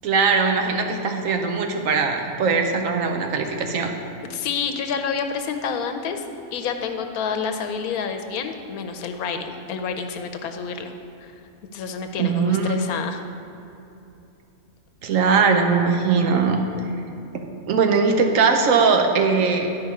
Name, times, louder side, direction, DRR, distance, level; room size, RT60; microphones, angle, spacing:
voice 1, 0.0-3.9 12.2-12.8 15.0-16.6 17.3-19.7, right 5 dB, 70° right, 4 dB, 1.1 m, -20 dB
voice 2, 4.3-6.2 6.5-10.9 11.2-11.3 11.7-13.2, left 6 dB, 85° left, 6 dB, 1.1 m, -28 dB
11.0 x 5.3 x 4.6 m, 2.8 s
omnidirectional pair, 1.5 m